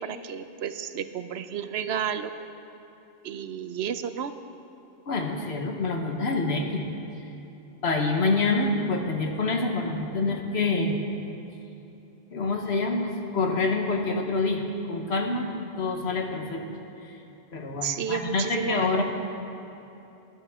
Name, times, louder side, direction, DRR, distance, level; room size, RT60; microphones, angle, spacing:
voice 1, 0.0-2.3 3.2-4.3 17.8-19.0, right 8 dB, 80° right, 10 dB, 0.9 m, -32 dB
voice 2, 5.1-6.9 7.8-11.0 12.3-14.6 14.9-15.5 15.8-16.7 17.0-17.2 17.5-19.0, left 3 dB, 85° left, 3 dB, 1.5 m, -26 dB
19.5 x 11.0 x 3.6 m, 2.9 s
omnidirectional pair, 1.1 m